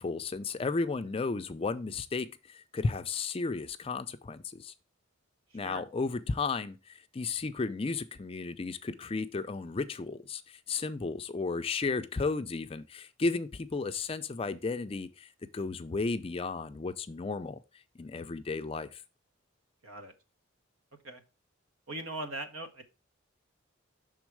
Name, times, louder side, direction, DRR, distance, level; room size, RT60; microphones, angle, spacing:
voice 1, 0.0-4.7 5.5-17.6 18.0-19.0, left 4 dB, 25° left, 0.4 m, -34 dB
voice 2, 19.8-20.1 21.0-21.2 21.9-22.8, right 1 dB, 80° right, 1.2 m, -40 dB
6.2 x 3.8 x 4.6 m
head